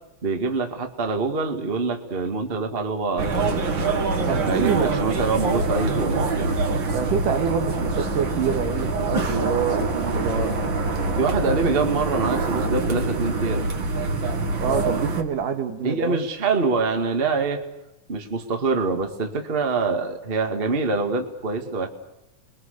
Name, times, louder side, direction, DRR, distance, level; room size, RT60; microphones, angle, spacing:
voice 1, 0.2-3.6 4.5-6.6 11.2-13.6 15.8-17.6 18.1-21.9, right 4 dB, 20° right, 1.9 m, -25 dB
sound 1, 3.2-15.2, right 3 dB, 40° right, 2.3 m, -25 dB
voice 2, 4.3-4.9 6.9-10.6 14.6-16.2, right 6 dB, 80° right, 3.4 m, -26 dB
29.5 x 22.5 x 6.8 m
omnidirectional pair, 3.7 m